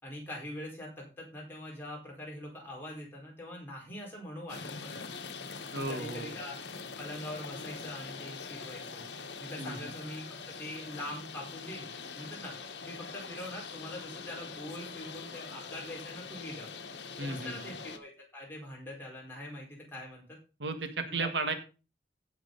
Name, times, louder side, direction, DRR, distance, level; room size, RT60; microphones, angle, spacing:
voice 1, 0.0-5.1 5.7-6.6 7.0-9.1 9.4-10.2 10.6-11.9 12.1-12.5 12.8-16.7 17.2-20.2 21.1-21.3, left 1 dB, 10° left, -3 dB, 4.5 m, -43 dB
sound 1, 4.5-18.0, left 5 dB, 75° left, 1.3 m, -43 dB
voice 2, 5.7-6.3 9.6-9.8 17.2-17.6 20.6-21.5, right 3 dB, 80° right, 7 dB, 1.6 m, -34 dB
16.0 x 6.3 x 3.9 m, 0.33 s
head